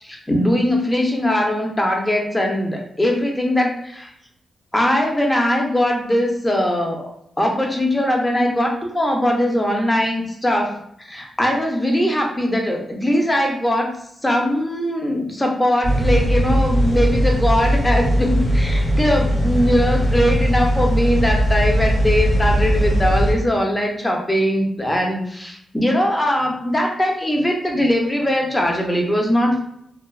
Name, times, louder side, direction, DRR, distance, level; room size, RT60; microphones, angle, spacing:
voice 1, 0.0-4.1 4.7-7.1 7.4-10.7 11.0-14.0 14.2-29.6, left 1 dB, 15° left, 1 dB, 0.5 m, -20 dB
sound 1, 15.8-23.3, equal, 55° left, 1.1 m, -19 dB
2.5 x 2.2 x 2.3 m, 0.71 s
cardioid pair, 85°, 0 cm